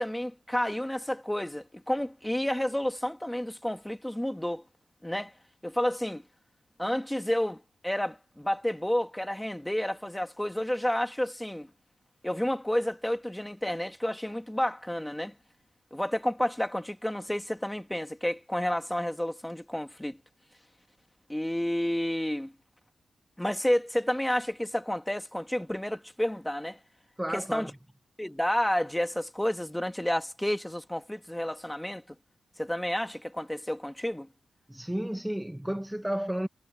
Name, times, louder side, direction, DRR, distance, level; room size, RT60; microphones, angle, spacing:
voice 1, 0.0-4.6 5.0-5.3 5.6-6.2 6.8-11.7 12.2-15.3 15.9-20.2 21.3-22.5 23.4-26.8 27.3-27.7 28.2-32.0 32.6-34.3, left 1 dB, 10° left, 2.6 m, -30 dB
voice 2, 27.2-27.8 34.7-36.5, right 1 dB, 5° right, 1.2 m, -32 dB
cardioid pair, 60°, 0 cm